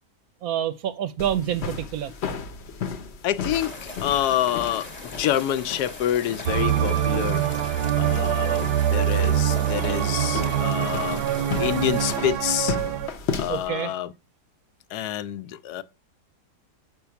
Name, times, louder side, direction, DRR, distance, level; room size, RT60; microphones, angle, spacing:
voice 1, 0.4-2.1 8.2-8.6 13.5-13.9, right 10 dB, 70° right, 1.0 m, -28 dB
sound 1, 1.2-13.7, left 5 dB, 50° left, 0.9 m, -35 dB
voice 2, 3.2-7.4 8.0-11.2 11.6-12.8 13.4-14.1 14.9-15.8, left 11 dB, 80° left, 1.1 m, -27 dB
sound 2, 3.5-12.2, left 2 dB, 25° left, 1.1 m, -39 dB
sound 3, 6.5-13.1, right 10 dB, 90° right, 1.2 m, -24 dB
6.3 x 5.7 x 5.8 m
omnidirectional pair, 1.7 m